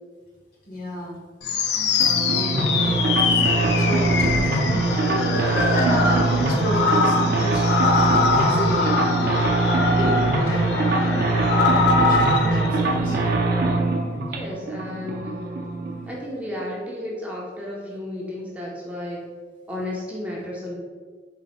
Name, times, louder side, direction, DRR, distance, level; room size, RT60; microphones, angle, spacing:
voice 1, 0.6-1.2 2.3-4.2 5.7-9.5 10.0-10.7 11.0-13.2, equal, 50° left, -3 dB, 1.0 m, -31 dB
sound 1, 1.4-12.7, left 4 dB, 65° left, 0.4 m, -23 dB
sound 2, 2.0-16.1, right 2 dB, 55° right, 0.5 m, -22 dB
voice 2, 14.2-15.5 16.1-19.3 19.7-20.7, left 1 dB, 10° right, -4 dB, 0.5 m, -33 dB
4.0 x 2.0 x 4.0 m, 1.5 s
head